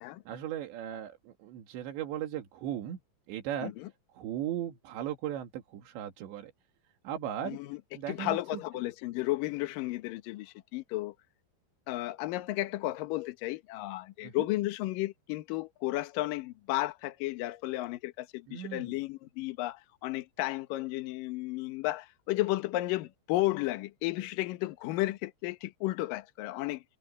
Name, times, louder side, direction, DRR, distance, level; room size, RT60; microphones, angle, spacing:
voice 1, 0.3-3.0 3.3-3.7 4.1-6.5 7.0-7.6 7.9-8.6 14.2-14.5 18.5-19.0, right 11 dB, 85° right, 4.2 m, -37 dB
voice 2, 7.4-7.8 8.1-11.1 11.9-26.8, left 17 dB, 70° left, 2.3 m, -33 dB
omnidirectional pair, 5.0 m